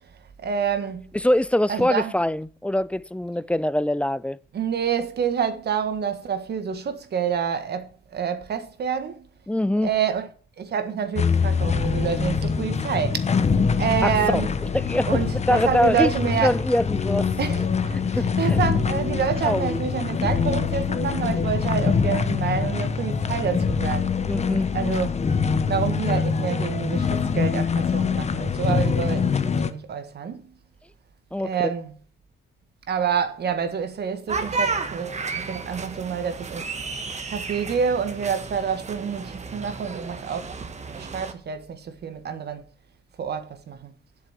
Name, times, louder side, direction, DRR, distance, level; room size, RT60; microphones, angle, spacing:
voice 1, 0.4-1.1 1.7-2.1 4.5-9.3 9.8-10.3 10.6-13.3 13.8-14.5 15.1-16.6 17.4-24.2 24.7-25.2 25.7-30.5 31.4-31.9 32.9-36.7 37.3-40.4 40.9-42.6 43.2-43.9, right 7 dB, 55° right, 1.6 m, -27 dB
voice 2, 1.2-4.4 9.5-9.9 14.0-14.4 14.9-16.1 16.4-17.3 18.2-18.6 19.4-19.8 24.3-24.7 31.3-31.5, left 1 dB, 5° left, 0.4 m, -23 dB
sound 1, 11.2-29.7, left 5 dB, 35° left, 1.0 m, -24 dB
sound 2, 34.3-41.3, right 4 dB, 35° right, 1.4 m, -32 dB
8.1 x 6.5 x 8.2 m
cardioid pair, 90°, 20 cm